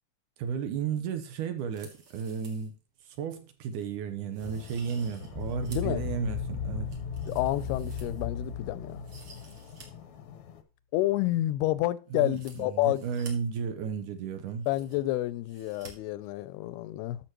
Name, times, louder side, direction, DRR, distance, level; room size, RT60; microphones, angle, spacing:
voice 1, 0.4-2.8 3.1-6.9 12.1-14.7, right 6 dB, 70° right, 2.0 m, -33 dB
sound 1, 1.6-2.7 3.1-3.2 3.7-3.9 4.3-6.0 6.4-8.5 8.9-9.9 10.1-10.2 12.2-13.3 14.1-14.2 14.4-15.1 15.4-15.9 16.2-16.3, right 3 dB, 45° right, 2.5 m, -53 dB
sound 2, 4.4-10.6, left 8 dB, 70° left, 1.8 m, -48 dB
sound 3, 5.3-10.0, left 6 dB, 15° right, 1.4 m, -36 dB
voice 2, 5.7-6.0 7.3-9.0 10.9-13.1 14.7-17.2, left 16 dB, 85° left, 2.6 m, -29 dB
13.0 x 6.4 x 3.0 m
omnidirectional pair, 4.5 m